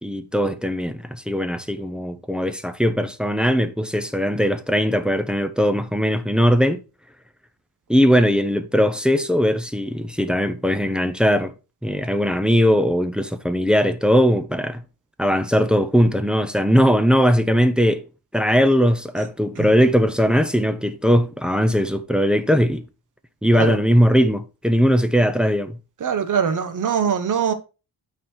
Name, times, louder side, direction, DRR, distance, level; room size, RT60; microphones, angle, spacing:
voice 1, 0.0-6.8 7.9-11.5 11.8-14.8 15.2-18.1 18.3-22.9 23.4-25.8, equal, ahead, 0.5 m, -19 dB
voice 2, 26.0-27.5, right 7 dB, 50° right, 1.1 m, -23 dB
9.4 x 4.2 x 4.4 m
wide cardioid pair, 160°, 38 cm